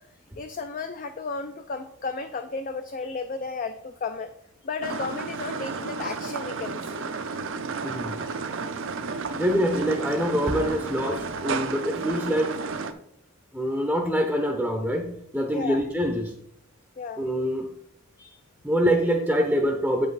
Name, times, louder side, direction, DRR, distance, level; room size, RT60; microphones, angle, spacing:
voice 1, 0.4-4.3 4.6-7.1 15.5-15.8 17.0-17.2 18.2-18.4, left 4 dB, 35° left, 7 dB, 0.4 m, -33 dB
sound 1, 4.8-12.9, right 4 dB, 55° right, 0.6 m, -32 dB
voice 2, 7.8-8.2 9.3-12.6 13.5-16.3 17.2-17.7 18.6-20.1, equal, 5° right, 3 dB, 0.6 m, -25 dB
8.0 x 5.4 x 4.0 m, 0.71 s
head